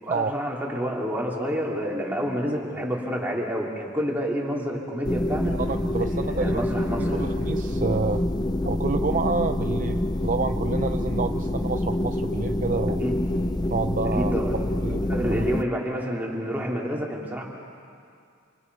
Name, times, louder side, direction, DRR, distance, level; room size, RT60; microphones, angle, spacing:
voice 1, 0.0-5.5 6.0-7.3 13.0-13.2 14.1-14.5 15.1-17.4, equal, 10° right, -3 dB, 3.5 m, -29 dB
sound 1, 5.0-15.6, left 1 dB, 20° left, 0.6 m, -26 dB
voice 2, 5.4-6.7 7.0-8.2 8.6-13.0 13.7-14.4 14.8-15.5, right 4 dB, 40° right, 7 dB, 0.6 m, -28 dB
30.0 x 29.0 x 5.6 m, 2.4 s
head